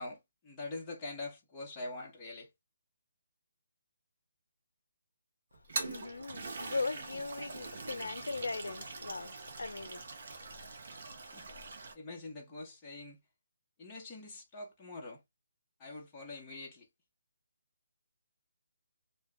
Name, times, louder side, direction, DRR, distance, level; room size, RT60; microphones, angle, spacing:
voice 1, 0.0-2.5 11.2-11.5 11.9-13.2 13.8-15.2 15.8-16.9, left 2 dB, 10° left, 0.7 m, -44 dB
Toilet flush, 5.5-11.9, right 3 dB, 50° right, 0.7 m, -43 dB
voice 2, 5.8-10.0, left 3 dB, 90° left, 0.4 m, -39 dB
2.2 x 2.1 x 3.6 m
hypercardioid pair, 175°, 0 cm